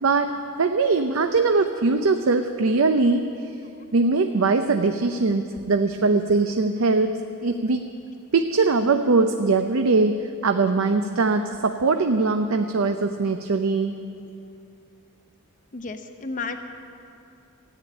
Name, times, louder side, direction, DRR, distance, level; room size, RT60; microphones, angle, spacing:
voice 1, 0.0-3.3 3.9-7.8 8.3-13.9, right 3 dB, 70° right, 6 dB, 0.6 m, -21 dB
voice 2, 15.7-16.6, left 4 dB, 40° left, 6 dB, 0.7 m, -32 dB
14.5 x 8.7 x 9.8 m, 2.6 s
head